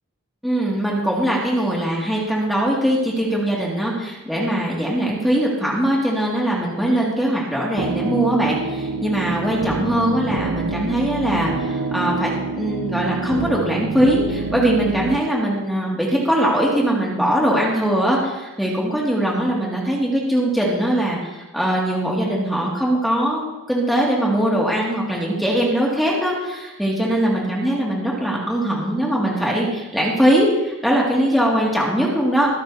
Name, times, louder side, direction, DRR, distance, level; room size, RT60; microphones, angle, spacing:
voice 1, 0.4-12.3 12.6-32.5, right 1 dB, ahead, -5 dB, 2.3 m, -21 dB
sound 1, 7.8-15.2, right 4 dB, 80° right, 0.6 m, -27 dB
24.0 x 9.1 x 2.8 m, 1.1 s
head